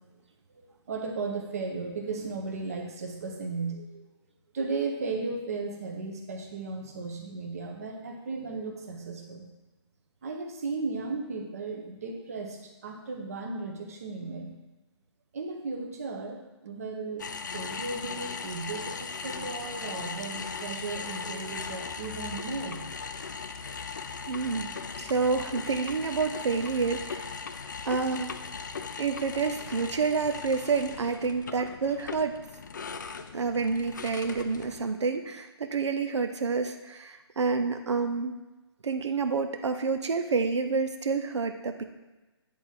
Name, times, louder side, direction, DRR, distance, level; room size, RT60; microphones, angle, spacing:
voice 1, 0.6-4.0 4.5-9.5 10.2-14.6 15.3-17.3 17.5-22.8, right 3 dB, 35° right, 2 dB, 0.8 m, -35 dB
sound 1, 17.2-34.9, left 5 dB, 45° left, 0.4 m, -38 dB
voice 2, 24.3-24.7 25.0-27.4 27.8-28.3 29.0-32.4 33.3-38.4 38.8-41.8, right 4 dB, 90° right, 7 dB, 0.7 m, -28 dB
8.7 x 3.6 x 4.3 m, 1.1 s
hypercardioid pair, 175°, 14 cm